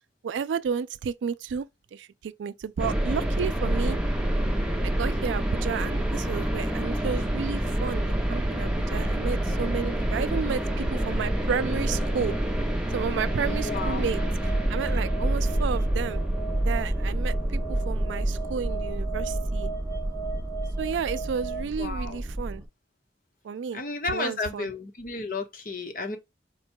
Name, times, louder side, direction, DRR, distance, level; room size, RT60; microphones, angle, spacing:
voice 1, 0.2-4.0 4.8-12.4 12.9-14.2 14.7-16.2 16.7-19.7 20.8-22.6 23.4-23.8 24.1-24.7, right 6 dB, 85° right, 0.3 m, -32 dB
sound 1, 2.8-22.6, right 1 dB, 5° right, 0.6 m, -27 dB
sound 2, 8.3-21.6, right 6 dB, 15° left, 1.0 m, -40 dB
voice 2, 13.4-14.0 21.8-22.2 23.7-26.2, left 3 dB, 50° left, 0.9 m, -33 dB
4.5 x 2.2 x 4.4 m
head